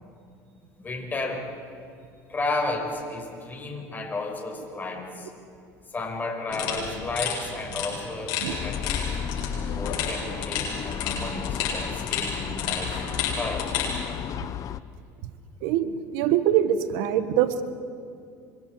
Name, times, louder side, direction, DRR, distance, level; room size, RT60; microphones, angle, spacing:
voice 1, 0.8-1.5 2.3-5.3 5.9-8.9 9.6-13.0 13.4-13.8, left 2 dB, 20° left, 1 dB, 5.6 m, -33 dB
sound 1, 6.5-13.9, left 7 dB, 70° left, 7.6 m, -32 dB
sound 2, 8.5-14.8, left 8 dB, 40° left, 0.7 m, -33 dB
voice 2, 15.6-17.6, right 10 dB, 75° right, 11 dB, 1.4 m, -24 dB
28.0 x 25.5 x 4.8 m, 2.4 s
supercardioid pair, 100°, 8 cm